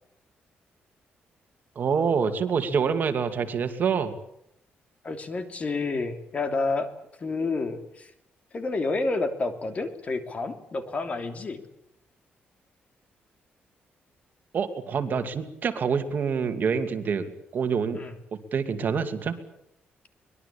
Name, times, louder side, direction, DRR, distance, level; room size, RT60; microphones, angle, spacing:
voice 1, 1.8-4.1 14.5-18.0 18.5-19.4, right 6 dB, 50° right, 8 dB, 2.6 m, -26 dB
voice 2, 5.0-6.9 7.2-8.1 8.5-11.6 17.9-18.1, left 3 dB, 35° left, 8 dB, 3.0 m, -29 dB
23.5 x 21.0 x 8.7 m, 0.78 s
cardioid pair, 135°, 4 cm